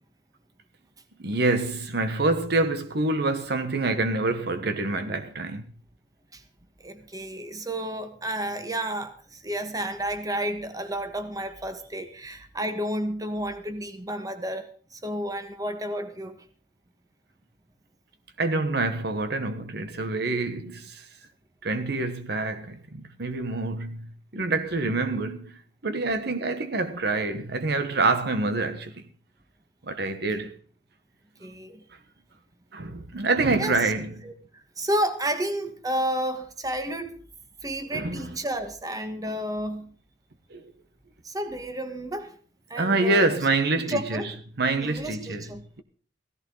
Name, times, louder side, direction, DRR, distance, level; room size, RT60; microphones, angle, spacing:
voice 1, 1.2-5.7 18.4-21.0 21.6-24.1 24.3-25.5 25.8-29.0 29.8-30.6 32.7-34.3 37.9-38.3 40.5-40.6 42.8-44.2 44.6-45.5, right 2 dB, 65° right, 1.2 m, -26 dB
voice 2, 6.8-16.4 30.4-30.5 31.4-31.8 33.6-33.8 34.2-37.2 37.6-39.9 41.2-42.3 42.7-43.3 43.9-44.3 44.8-45.6, right 1 dB, 20° right, 1.5 m, -31 dB
16.5 x 14.5 x 4.0 m
head